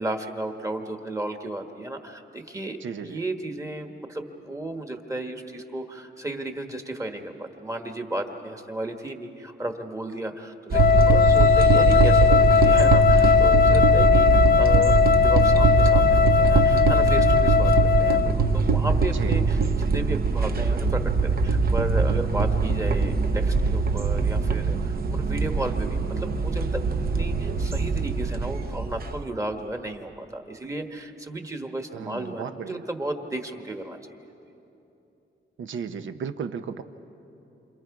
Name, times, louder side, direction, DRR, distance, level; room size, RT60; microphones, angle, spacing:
voice 1, 0.0-17.7 18.0-21.0 21.4-26.8 27.1-34.0, right 1 dB, 15° right, 5 dB, 1.3 m, -33 dB
voice 2, 2.8-3.2 11.7-12.1 19.1-19.4 31.9-32.8 35.6-36.8, right 6 dB, 75° right, 9 dB, 0.9 m, -34 dB
Wind instrument woodwind instrument, 10.7-18.4, left 8 dB, 45° left, 0.4 m, -19 dB
sound 1, 10.7-29.2, right 4 dB, 50° right, 0.8 m, -22 dB
28.5 x 26.5 x 4.8 m, 3.0 s
wide cardioid pair, 150°, 20 cm